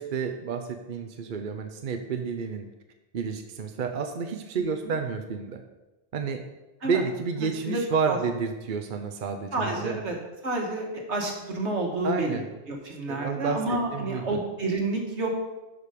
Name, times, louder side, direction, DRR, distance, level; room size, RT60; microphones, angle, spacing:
voice 1, 0.0-2.6 3.1-5.6 6.1-6.4 6.8-10.0 12.0-12.4 13.1-14.4, right 5 dB, 50° right, 6 dB, 0.8 m, -30 dB
voice 2, 4.6-4.9 6.8-7.0 7.6-7.8 8.1-8.2 9.5-10.2 10.4-12.4 12.7-15.3, right 2 dB, 70° right, 1 dB, 1.9 m, -29 dB
11.0 x 5.3 x 5.1 m, 1.1 s
omnidirectional pair, 1.2 m